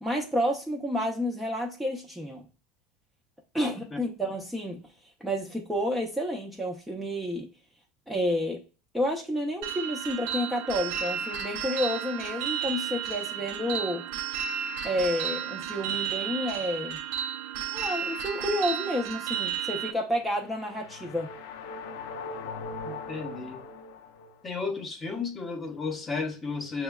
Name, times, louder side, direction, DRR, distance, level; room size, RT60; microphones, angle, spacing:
voice 1, 0.0-2.4 3.5-4.8 5.2-7.5 8.1-8.6 8.9-14.0 14.8-17.0 17.7-21.3, equal, 5° right, 0.5 m, -30 dB
sound 1, 9.6-19.9, right 8 dB, 75° right, 0.5 m, -33 dB
sound 2, 20.1-24.5, left 4 dB, 75° left, 0.5 m, -40 dB
voice 2, 22.8-23.7 24.4-26.8, left 4 dB, 25° left, 0.8 m, -33 dB
6.1 x 2.1 x 2.2 m
supercardioid pair, 140°, 0 cm